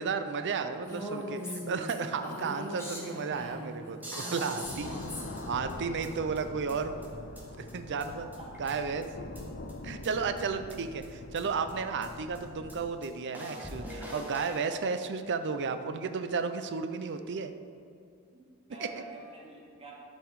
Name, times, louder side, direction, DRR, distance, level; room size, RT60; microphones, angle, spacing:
voice 1, 0.0-4.0 4.3-4.9 5.5-7.0 7.6-8.3 8.6-9.1 9.8-17.5, right 5 dB, 50° right, 9 dB, 0.5 m, -33 dB
Female speech woman speaking, 0.8-5.5, equal, 10° left, 1.4 m, -40 dB
voice 2, 2.2-2.5 4.0-5.0 8.4-8.6 18.6-19.9, right 1 dB, 25° right, -3 dB, 1.7 m, -47 dB
sound 1, 4.0-6.1 6.3-6.4 6.7-6.8 7.0-7.1 7.3-7.4 7.7-7.8 8.0-8.1 8.3-9.0 9.3-9.4 9.7-9.8 10.0-10.1 10.4-10.5 10.7-10.8 11.0-11.1 11.3-11.4 11.7-11.8 12.0-12.1 12.3-12.4 12.7-12.8 13.0-13.1 13.3-14.7, equal, 10° right, 1.6 m, -43 dB
sound 2, 4.6-12.9, left 2 dB, 45° left, 0.6 m, -44 dB
12.5 x 5.2 x 4.8 m, 2.4 s
head